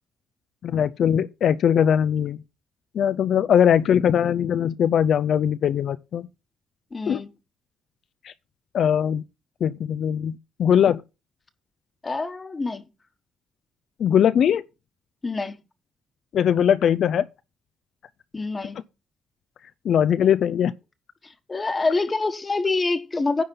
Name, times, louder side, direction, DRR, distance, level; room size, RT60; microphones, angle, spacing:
voice 1, 0.6-2.4 2.9-6.3 7.1-7.2 8.2-8.3 8.7-9.2 9.6-11.0 14.0-14.6 16.3-17.3 19.8-20.7, left 8 dB, 65° left, 0.4 m, -20 dB
voice 2, 6.9-7.3 12.0-12.8 15.2-15.5 18.3-18.8 21.2-23.4, left 3 dB, 25° left, 1.2 m, -26 dB
10.0 x 3.8 x 6.9 m
cardioid pair, 90°, 0 cm